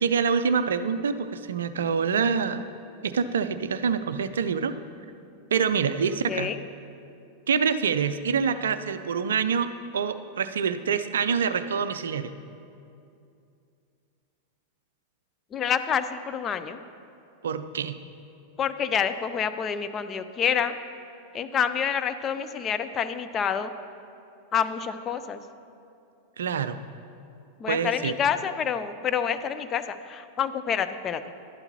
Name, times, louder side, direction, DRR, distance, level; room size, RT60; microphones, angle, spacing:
voice 1, 0.0-2.7 3.0-4.7 5.5-6.5 7.5-9.7 9.9-12.3 17.4-18.0 26.4-26.8 27.7-28.1, right 6 dB, 65° right, 12 dB, 0.4 m, -26 dB
voice 2, 6.3-6.6 15.5-16.8 18.6-20.8 21.3-23.7 24.5-25.4 27.6-31.4, left 7 dB, 25° left, 10 dB, 0.4 m, -28 dB
12.0 x 11.5 x 2.9 m, 2.5 s
figure-of-eight pair, 90°, 0 cm